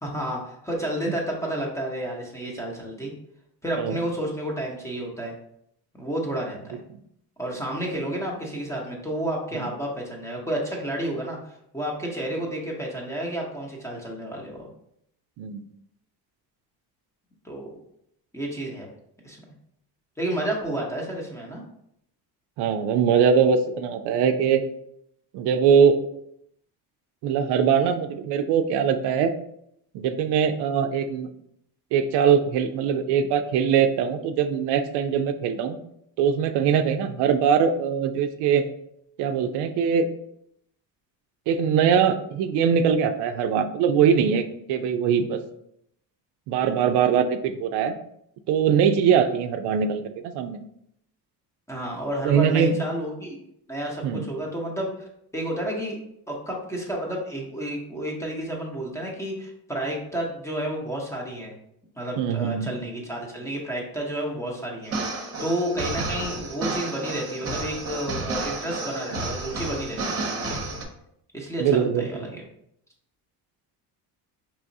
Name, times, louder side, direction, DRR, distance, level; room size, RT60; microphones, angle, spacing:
voice 1, 0.0-3.1 3.6-5.3 5.9-6.6 7.4-14.7 17.4-17.7 18.3-18.9 19.2-19.4 20.2-21.6 51.7-53.4 53.7-54.9 55.3-56.0 56.3-61.5 62.0-70.7 71.3-72.4, right 1 dB, 5° left, -2 dB, 0.7 m, -31 dB
voice 2, 22.6-24.6 25.3-26.0 27.2-29.3 29.9-31.3 31.9-35.8 36.2-38.6 39.2-40.1 41.5-45.4 46.5-47.9 48.5-50.6 52.2-52.8 54.0-54.3 62.2-62.7 71.6-72.1, right 7 dB, 80° right, 8 dB, 0.5 m, -22 dB
sound 1, 64.8-70.8, right 3 dB, 35° right, 0.8 m, -31 dB
4.7 x 3.0 x 2.6 m, 0.74 s
cardioid pair, 140°, 40 cm